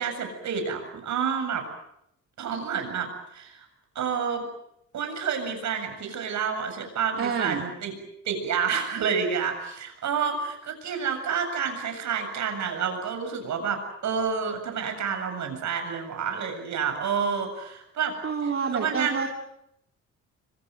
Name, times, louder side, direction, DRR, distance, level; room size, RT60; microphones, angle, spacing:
voice 1, 0.0-1.7 2.4-3.7 3.9-4.5 4.9-7.9 8.2-18.1 18.4-19.2, right 6 dB, 70° right, 6 dB, 7.7 m, -29 dB
voice 2, 7.2-7.6 18.2-19.3, right 6 dB, 45° right, 1 dB, 3.0 m, -28 dB
26.5 x 23.5 x 7.8 m, 0.78 s
cardioid pair, 90°, 30 cm